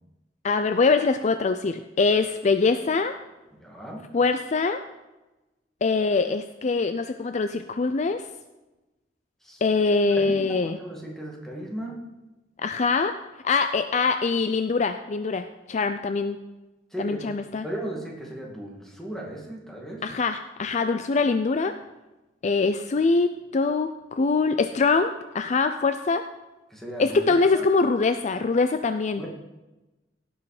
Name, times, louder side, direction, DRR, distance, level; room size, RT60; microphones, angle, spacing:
voice 1, 0.4-3.1 4.1-4.8 5.8-8.2 9.6-10.8 12.6-13.1 13.4-16.4 17.0-17.6 20.0-21.8 22.4-26.2 27.0-29.2, left 4 dB, 40° left, 9 dB, 0.4 m, -23 dB
voice 2, 3.6-4.0 9.4-9.6 10.2-12.0 16.9-17.4 17.6-20.0 26.7-27.6 29.2-29.3, right 1 dB, ahead, -2 dB, 2.1 m, -36 dB
16.5 x 6.3 x 4.9 m, 1.1 s
head